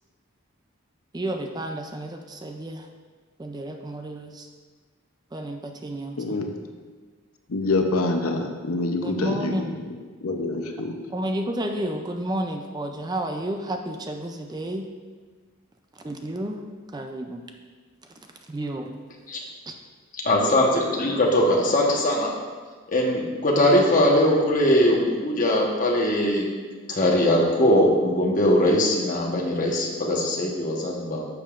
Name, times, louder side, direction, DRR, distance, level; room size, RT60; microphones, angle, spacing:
voice 1, 1.1-2.9 3.4-4.5 5.3-6.2 9.0-9.7 11.1-14.9 16.0-17.4 18.5-18.9, right 1 dB, 20° right, 4 dB, 0.4 m, -31 dB
voice 2, 6.2-6.5 7.5-11.0, left 2 dB, 75° left, 4 dB, 0.8 m, -26 dB
voice 3, 20.3-22.3 22.9-26.5 26.9-31.3, left 1 dB, 35° left, -2 dB, 1.2 m, -21 dB
11.0 x 7.0 x 2.5 m, 1.5 s
head